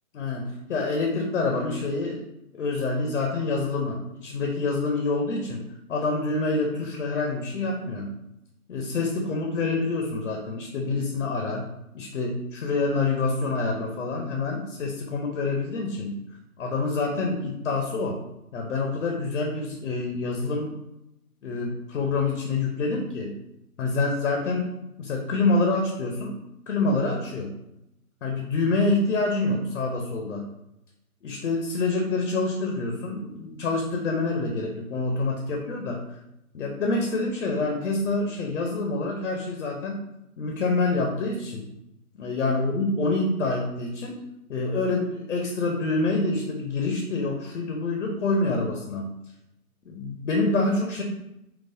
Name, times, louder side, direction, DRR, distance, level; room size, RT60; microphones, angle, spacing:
voice 1, 0.1-2.2 2.5-5.6 5.9-8.2 8.7-11.7 11.9-16.2 16.6-18.2 18.5-20.7 21.4-23.3 23.8-24.7 25.0-26.3 26.7-27.5 28.2-30.4 31.2-36.0 36.5-40.0 40.4-41.7 42.1-44.2 44.5-49.1 49.8-51.0, left 3 dB, 60° left, 1 dB, 0.7 m, -27 dB
3.9 x 2.3 x 2.6 m, 0.87 s
hypercardioid pair, 150°, 45 cm